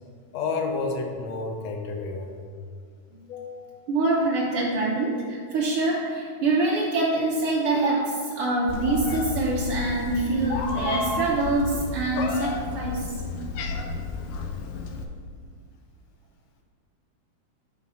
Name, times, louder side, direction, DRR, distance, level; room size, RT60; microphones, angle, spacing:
voice 1, 0.3-2.4 3.3-3.7, left 4 dB, 70° left, 3 dB, 1.7 m, -30 dB
voice 2, 3.9-13.1, right 2 dB, 75° right, -4 dB, 1.3 m, -25 dB
Meow, 8.7-15.0, left 4 dB, 85° left, 2.3 m, -31 dB
10.0 x 4.2 x 5.4 m, 2.1 s
omnidirectional pair, 3.7 m